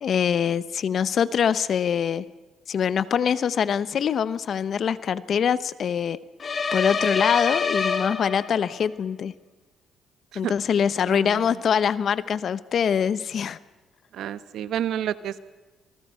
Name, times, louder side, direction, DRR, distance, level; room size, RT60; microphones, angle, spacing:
voice 1, 0.0-2.2 2.7-6.2 6.7-9.3 10.3-13.6, left 7 dB, 60° left, 16 dB, 0.9 m, -24 dB
sound 1, 6.4-8.8, left 5 dB, 40° left, 2.5 m, -26 dB
voice 2, 11.1-11.6 14.1-15.5, right 10 dB, 75° right, 14 dB, 1.1 m, -30 dB
27.5 x 19.5 x 5.6 m, 1.2 s
cardioid pair, 90°, 0 cm